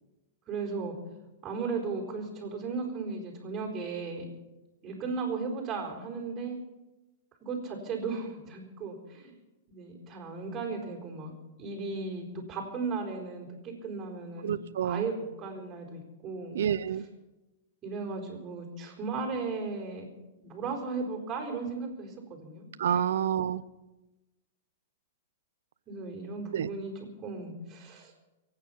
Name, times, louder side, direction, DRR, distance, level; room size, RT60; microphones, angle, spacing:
voice 1, 0.5-1.0 1.4-4.3 4.8-6.6 7.4-9.4 9.7-11.3 11.6-14.5 14.8-16.6 17.8-20.1 20.4-23.0 25.9-26.9 27.2-28.1, right 4 dB, 25° right, 0 dB, 4.5 m, -36 dB
voice 2, 14.4-15.1 16.5-17.1 22.8-23.6 26.5-26.7, right 9 dB, 75° right, 17 dB, 0.7 m, -28 dB
24.0 x 9.1 x 5.8 m, 1.1 s
hypercardioid pair, 135°, 0 cm